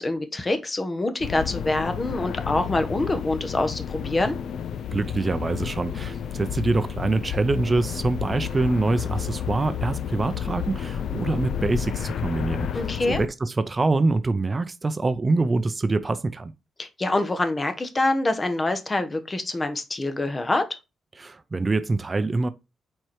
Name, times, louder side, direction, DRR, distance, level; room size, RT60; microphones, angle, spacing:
voice 1, 0.0-4.4 12.7-13.2 16.8-20.7, left 2 dB, 30° left, 1.2 m, -25 dB
sound 1, 1.2-13.3, left 8 dB, 75° left, 0.5 m, -31 dB
voice 2, 4.9-16.5 21.2-22.5, right 3 dB, 30° right, 0.6 m, -25 dB
4.6 x 4.5 x 4.6 m
cardioid pair, 65°, 0 cm